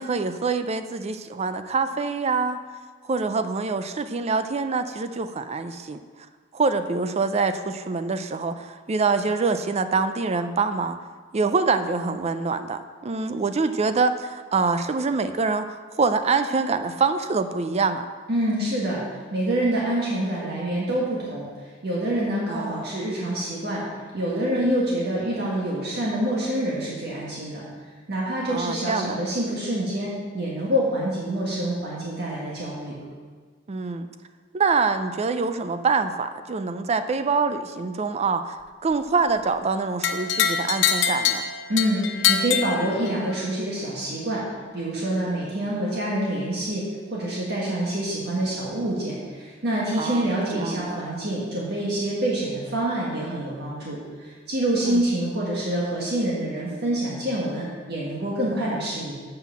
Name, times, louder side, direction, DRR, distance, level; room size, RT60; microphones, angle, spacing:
voice 1, 0.0-2.6 3.0-6.0 6.5-11.0 11.3-18.1 22.5-22.8 28.5-29.2 33.7-34.1 34.5-38.6 38.8-41.5 50.0-50.3 50.6-50.8 54.8-55.0, right 4 dB, 35° right, 10 dB, 0.4 m, -25 dB
voice 2, 18.3-23.8 24.1-27.6 28.1-33.0 41.7-44.4 44.7-59.1, right 1 dB, 55° right, -5 dB, 1.7 m, -26 dB
sound 1, 40.0-43.4, left 8 dB, 65° left, 0.8 m, -24 dB
7.7 x 5.7 x 7.1 m, 1.5 s
head